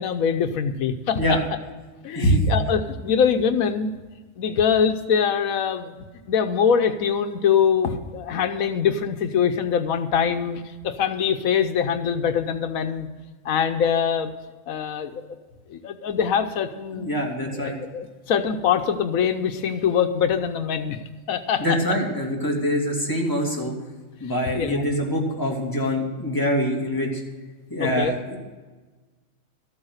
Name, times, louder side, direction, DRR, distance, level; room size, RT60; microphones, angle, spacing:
voice 1, 0.0-1.4 2.0-3.9 4.4-5.9 6.3-13.1 13.4-14.3 14.7-15.2 15.7-17.1 17.5-21.0 21.3-21.8 24.5-24.9 27.8-28.1, left 7 dB, 85° left, 8 dB, 1.2 m, -23 dB
voice 2, 16.9-17.8 21.6-23.7 24.2-27.2 27.7-28.4, equal, 15° left, -2 dB, 2.7 m, -24 dB
13.5 x 8.9 x 6.4 m, 1.3 s
omnidirectional pair, 1.4 m